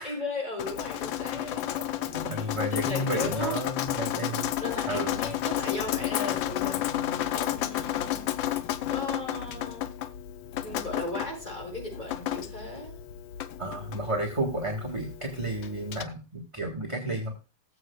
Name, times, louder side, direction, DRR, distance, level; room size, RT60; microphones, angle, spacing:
voice 1, 0.0-2.5 2.9-3.6 4.3-8.4 8.9-9.9 10.6-13.0, left 2 dB, 20° left, -3 dB, 6.2 m, -37 dB
Drip, 0.6-16.0, left 12 dB, 75° left, 1.3 m, -32 dB
voice 2, 2.1-4.5 4.9-5.3 13.6-17.3, right 1 dB, 15° right, 0 dB, 1.3 m, -32 dB
19.0 x 7.6 x 2.3 m, 0.30 s
omnidirectional pair, 2.4 m